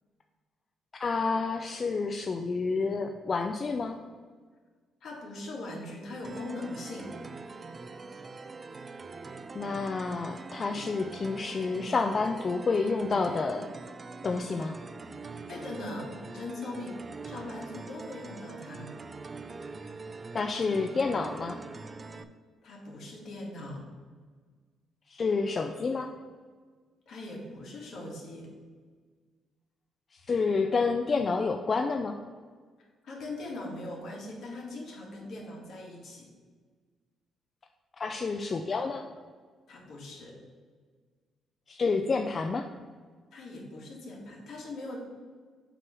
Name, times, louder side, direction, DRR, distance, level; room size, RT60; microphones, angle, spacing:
voice 1, 1.0-4.0 9.5-13.7 14.2-14.8 20.3-21.6 25.1-26.1 30.3-32.2 38.0-39.0 41.7-42.7, left 4 dB, 40° left, 4 dB, 0.4 m, -29 dB
voice 2, 5.0-7.2 15.5-18.9 22.6-23.8 27.1-28.5 33.0-36.3 39.7-40.4 43.3-45.0, left 2 dB, 65° left, -1 dB, 1.7 m, -40 dB
sound 1, 6.2-22.2, right 4 dB, 35° right, 0.4 m, -43 dB
7.6 x 3.1 x 6.1 m, 1.5 s
cardioid pair, 90°, 0 cm